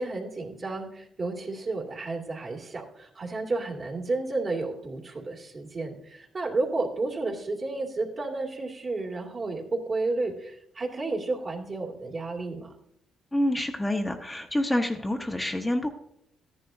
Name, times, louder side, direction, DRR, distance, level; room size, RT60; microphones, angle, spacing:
voice 1, 0.0-12.7, right 3 dB, 40° right, 0 dB, 2.3 m, -32 dB
voice 2, 13.3-15.9, left 1 dB, 10° left, 3 dB, 0.9 m, -27 dB
14.0 x 10.5 x 2.6 m, 0.75 s
cardioid pair, 90°, 0 cm